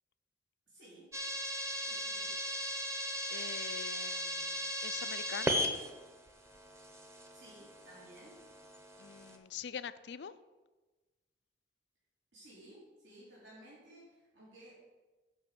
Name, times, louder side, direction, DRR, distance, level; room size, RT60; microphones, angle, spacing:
voice 1, 0.7-1.1 1.8-2.3 7.3-8.3 12.3-14.7, right 1 dB, 80° right, -8 dB, 3.3 m, -56 dB
sound 1, 1.1-9.4, equal, 15° right, 0.8 m, -38 dB
voice 2, 3.3-5.6 9.0-10.3, left 7 dB, 65° left, 14 dB, 0.4 m, -44 dB
8.1 x 5.2 x 7.5 m, 1.2 s
head